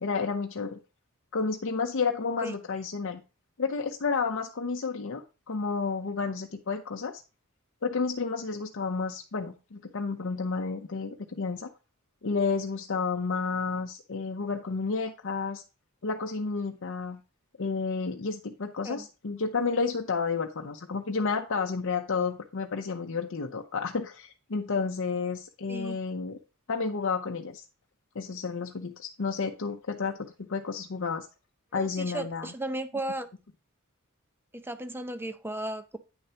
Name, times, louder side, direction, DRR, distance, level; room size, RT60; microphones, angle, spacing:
voice 1, 0.0-0.8 1.3-3.2 3.6-7.2 7.8-11.7 12.2-15.6 16.0-17.2 17.6-26.4 26.7-27.6 28.1-31.3 31.7-32.5, left 4 dB, 60° left, 0.7 m, -31 dB
voice 2, 31.7-33.3 34.5-36.0, right 1 dB, 10° right, 0.6 m, -35 dB
9.1 x 6.6 x 2.9 m
head